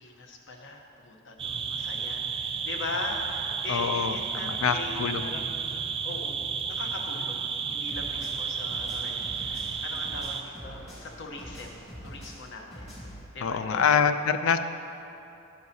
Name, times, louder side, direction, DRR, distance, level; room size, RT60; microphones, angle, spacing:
voice 1, 0.0-5.7 6.0-12.9 13.3-14.0, left 3 dB, 65° left, 2 dB, 0.9 m, -40 dB
sound 1, 1.4-10.4, right 6 dB, 25° right, 0.3 m, -32 dB
voice 2, 3.7-5.3 13.4-14.6, left 6 dB, 80° left, 10 dB, 0.4 m, -25 dB
sound 2, 7.9-13.2, equal, 30° left, 1.9 m, -44 dB
10.5 x 9.4 x 2.8 m, 2.7 s
head